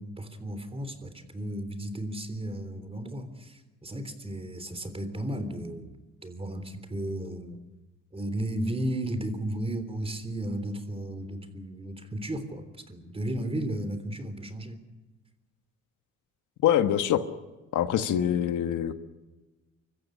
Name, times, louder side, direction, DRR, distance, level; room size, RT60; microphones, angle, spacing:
voice 1, 0.0-7.6 8.1-14.8, right 1 dB, 20° right, 10 dB, 3.5 m, -34 dB
voice 2, 16.6-17.2 17.7-18.9, left 10 dB, 80° left, 10 dB, 1.4 m, -24 dB
25.0 x 14.5 x 9.9 m, 1.2 s
cardioid pair, 90°, 30 cm